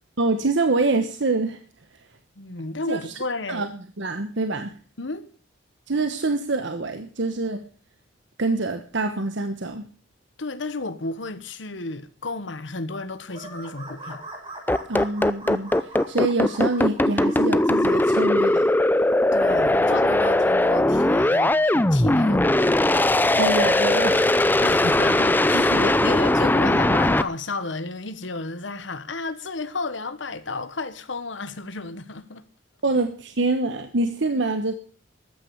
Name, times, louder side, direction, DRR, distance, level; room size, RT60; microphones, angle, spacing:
voice 1, 0.2-1.6 2.9-3.1 3.5-3.7 4.0-4.7 5.9-7.6 8.4-9.9 14.9-18.7 23.4-24.4 25.5-26.1 32.8-34.7, right 2 dB, 70° right, 1.2 m, -25 dB
voice 2, 2.4-3.6 5.0-5.3 10.4-14.2 19.3-22.8 24.6-32.5, left 3 dB, 70° left, 1.3 m, -32 dB
sound 1, 13.3-18.0, right 2 dB, 30° right, 6.1 m, -41 dB
sound 2, 14.7-27.2, left 1 dB, 10° left, 0.6 m, -19 dB
14.0 x 9.2 x 7.1 m
head